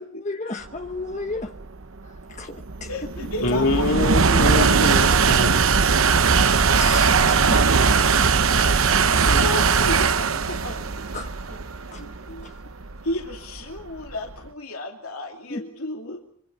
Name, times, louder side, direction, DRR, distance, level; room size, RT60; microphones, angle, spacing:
voice 1, 0.0-1.5 2.0-2.9 3.2-3.3 4.6-4.7 6.4-8.7 11.1-11.3 11.9-12.0 12.4-12.5 15.5-15.6, left 3 dB, 35° left, 1.1 m, -34 dB
sound 1, 1.0-14.3, right 5 dB, 70° right, 1.0 m, -20 dB
voice 2, 2.9-4.0 4.3-4.4 8.9-11.2 11.5-11.6 13.0-16.2, left 1 dB, 80° left, 2.7 m, -33 dB
voice 3, 3.4-5.6 12.0-12.4, left 2 dB, 65° left, 3.1 m, -25 dB
25.5 x 25.0 x 5.6 m
head